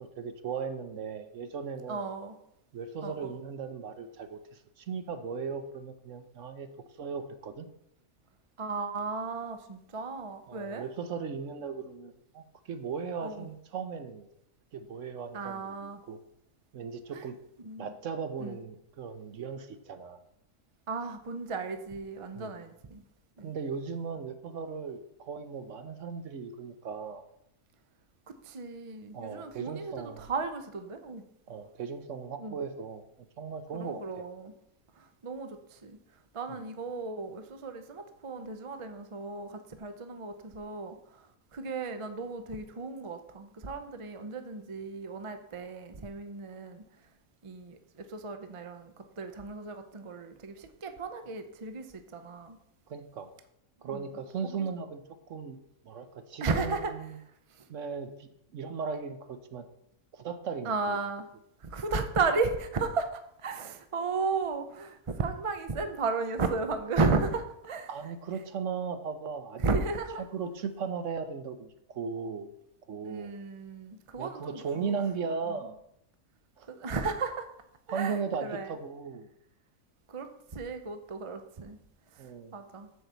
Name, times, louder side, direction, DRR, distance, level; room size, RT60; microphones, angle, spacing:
voice 1, 0.0-2.0 2.7-6.7 7.0-7.7 10.5-14.3 14.7-16.2 16.7-17.4 17.8-20.2 22.3-22.6 23.4-27.2 29.1-30.3 31.5-33.0 33.4-34.2 36.5-36.6 52.9-53.3 53.8-55.6 55.8-57.2 57.7-59.7 60.1-61.0 67.9-69.6 70.2-72.5 72.9-73.3 74.2-75.8 76.6-76.7 77.9-79.3 82.2-82.5, right 5 dB, 65° right, 8 dB, 1.0 m, -37 dB
voice 2, 1.9-2.4 3.0-3.3 8.6-10.8 13.2-13.5 15.3-16.0 17.1-17.3 17.6-17.9 18.4-18.6 20.9-23.0 23.4-23.5 28.3-31.2 32.4-32.6 33.7-34.5 35.0-36.0 36.3-41.3 41.5-46.8 47.4-52.6 53.8-54.0 54.4-54.5 56.4-56.9 57.6-57.7 60.6-61.3 61.6-67.9 68.3-68.4 69.6-70.2 73.0-75.0 75.5-75.6 76.7-77.5 77.9-78.7 80.1-81.8 82.1-82.2 82.5-82.9, right 4 dB, 35° right, 8 dB, 0.5 m, -34 dB
8.0 x 4.7 x 6.8 m, 0.76 s
omnidirectional pair, 1.5 m